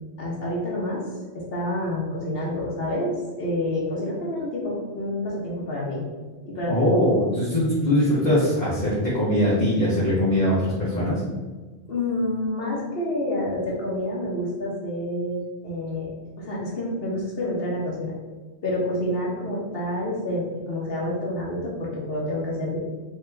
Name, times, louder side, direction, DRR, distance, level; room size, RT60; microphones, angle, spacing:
voice 1, 0.2-1.0 1.3-3.1 3.4-6.0 6.4-7.0 11.9-16.1 16.4-18.1 18.6-22.8, left 1 dB, 60° left, -4 dB, 1.4 m, -28 dB
voice 2, 6.7-11.2, left 1 dB, 40° left, -10 dB, 1.3 m, -21 dB
4.5 x 2.9 x 3.4 m, 1.3 s
omnidirectional pair, 1.1 m